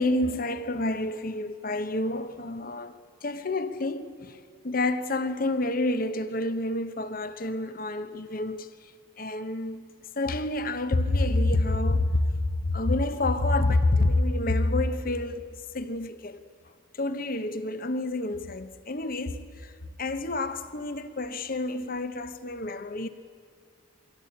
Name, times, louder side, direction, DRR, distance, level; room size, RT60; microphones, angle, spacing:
voice 1, 0.0-4.4 4.6-8.7 9.2-9.8 10.2-16.5 17.0-19.7 20.0-23.1, left 2 dB, 45° left, 1.0 m, -28 dB
23.5 x 16.5 x 8.6 m
head